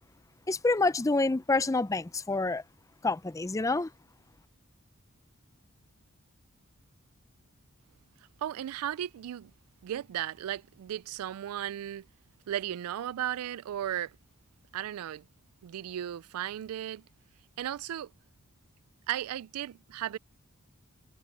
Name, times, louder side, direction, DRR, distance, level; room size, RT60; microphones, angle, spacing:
voice 1, 0.5-2.6 3.0-3.9, left 3 dB, 15° left, 0.4 m, -27 dB
voice 2, 8.4-9.5 9.8-12.0 12.5-14.2 14.7-15.3 15.6-17.0 17.6-18.1 19.1-20.2, right 11 dB, 85° right, 0.3 m, -35 dB
head